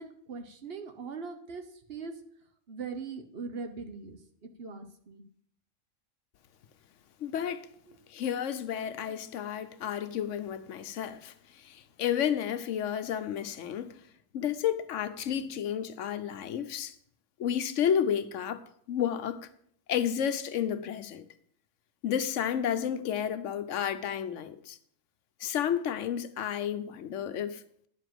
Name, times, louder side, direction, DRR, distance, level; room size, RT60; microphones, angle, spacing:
voice 1, 0.0-2.2 2.7-5.2 7.9-8.0 8.8-9.1, right 4 dB, 55° right, 1.1 m, -41 dB
voice 2, 7.2-7.7 8.1-13.9 14.3-16.9 17.4-18.6 18.9-19.5 19.9-21.3 22.0-24.8 25.4-27.9, left 9 dB, 75° left, 1.0 m, -31 dB
10.5 x 5.0 x 7.5 m
omnidirectional pair, 1.3 m